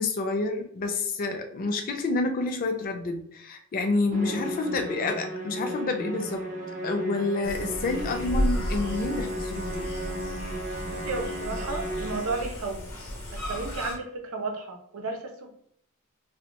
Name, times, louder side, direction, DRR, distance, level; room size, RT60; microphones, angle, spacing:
voice 1, 0.0-6.5 6.8-9.9, left 3 dB, 45° left, 6 dB, 0.4 m, -29 dB
Musical instrument, 4.1-12.6, equal, 35° right, 0.5 m, -35 dB
sound 1, 7.4-13.9, equal, 70° left, 0.8 m, -33 dB
voice 2, 10.9-12.9 13.5-15.5, right 3 dB, 85° right, 3 dB, 0.5 m, -33 dB
2.5 x 2.1 x 2.8 m, 0.68 s
head